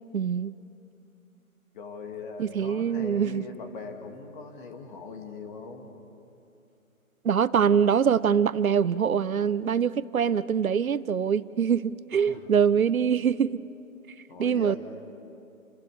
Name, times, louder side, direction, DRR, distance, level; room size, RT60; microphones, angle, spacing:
voice 1, 0.1-0.5 2.4-3.4 7.2-13.6 14.4-14.8, right 7 dB, 75° right, 0.7 m, -24 dB
voice 2, 1.7-5.9 12.1-12.4 14.3-14.8, left 4 dB, 35° left, 2.6 m, -40 dB
30.0 x 26.0 x 5.1 m
figure-of-eight pair, 145°, 42 cm